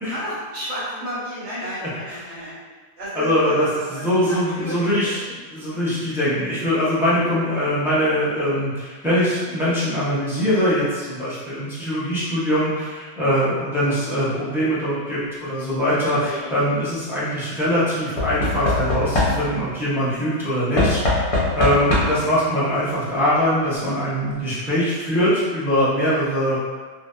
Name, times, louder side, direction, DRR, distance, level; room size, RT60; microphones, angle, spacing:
voice 1, 0.1-2.6 3.0-5.2 5.5-5.8 13.7-14.0 22.2-22.3, equal, 80° right, -9 dB, 1.3 m, -32 dB
voice 2, 3.1-21.0 21.6-26.6, equal, ahead, -11 dB, 0.7 m, -22 dB
Knock / Wood, 16.0-16.5 18.2-19.7 20.8-22.3 23.4-23.5 23.7-23.8, left 2 dB, 50° left, 0.4 m, -22 dB
2.6 x 2.3 x 2.2 m, 1.4 s
omnidirectional pair, 1.2 m